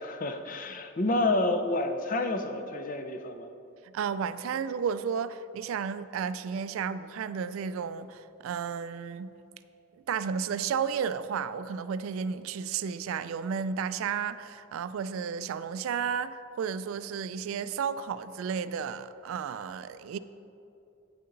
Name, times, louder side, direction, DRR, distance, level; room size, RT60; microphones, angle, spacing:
voice 1, 0.0-3.5, left 2 dB, 40° left, 0.5 m, -29 dB
voice 2, 3.9-9.3 10.1-20.2, right 6 dB, 75° right, 0.3 m, -33 dB
8.7 x 6.6 x 3.9 m
head